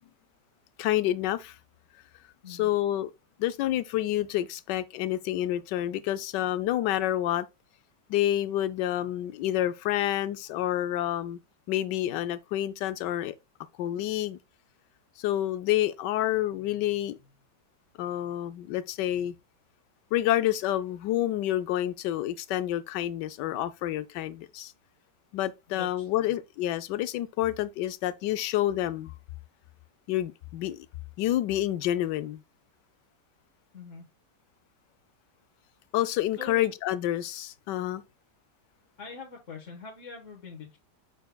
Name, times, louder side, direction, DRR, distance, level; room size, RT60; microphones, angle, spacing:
voice 1, 0.8-1.6 2.5-3.1 3.4-7.5 8.1-11.4 11.7-13.3 13.8-14.4 15.2-17.2 18.0-19.3 20.1-24.7 25.3-29.1 30.1-30.9 31.2-32.4 35.9-38.0, left 13 dB, 85° left, 1.2 m, -28 dB
voice 2, 25.7-26.3 33.7-34.0 36.4-36.7 39.0-40.8, left 5 dB, 50° left, 1.5 m, -43 dB
6.6 x 6.4 x 2.2 m
omnidirectional pair, 1.8 m